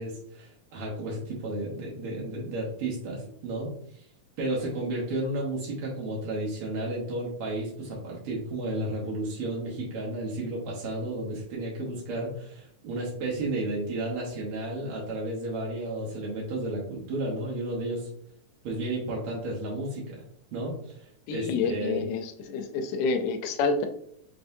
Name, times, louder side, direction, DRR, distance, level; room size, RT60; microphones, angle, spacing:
voice 1, 0.0-4.1 4.4-18.1 18.6-20.2 20.5-22.0, right 1 dB, 65° right, -4 dB, 1.5 m, -32 dB
voice 2, 21.3-23.9, left 4 dB, 80° left, 7 dB, 1.6 m, -28 dB
4.4 x 3.9 x 2.6 m, 0.68 s
omnidirectional pair, 3.4 m